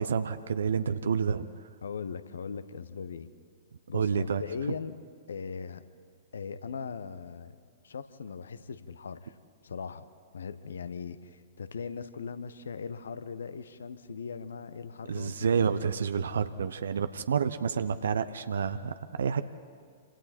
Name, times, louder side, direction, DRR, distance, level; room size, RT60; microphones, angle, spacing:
voice 1, 0.0-1.5 3.9-4.4 15.1-19.4, right 6 dB, 60° right, 11 dB, 0.8 m, -29 dB
voice 2, 1.8-3.3 3.9-5.0 5.3-5.8 6.3-7.6 7.8-9.3 9.6-10.0 10.3-15.5, left 6 dB, 65° left, 13 dB, 1.1 m, -39 dB
28.5 x 25.5 x 4.4 m, 2.1 s
figure-of-eight pair, 110°, 0 cm